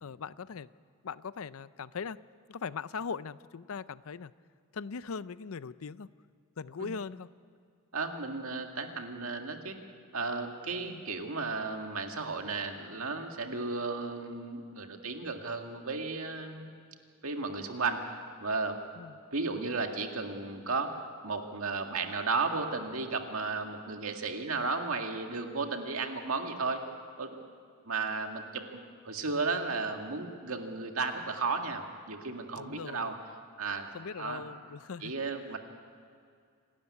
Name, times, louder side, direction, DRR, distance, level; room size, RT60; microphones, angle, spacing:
voice 1, 0.0-0.7 1.0-2.2 2.5-4.3 4.7-6.1 6.6-7.3 10.8-11.0 19.0-19.2 32.6-33.1 33.9-35.1, left 5 dB, 70° left, 17 dB, 0.5 m, -40 dB
voice 2, 7.9-9.8 10.1-16.7 17.2-18.1 18.4-18.8 19.3-26.8 27.2-27.4 27.9-28.6 29.0-33.2 33.6-33.9 34.2-34.4 35.0-35.6, right 4 dB, 70° right, 4 dB, 2.1 m, -34 dB
27.0 x 13.0 x 9.8 m, 2.3 s
head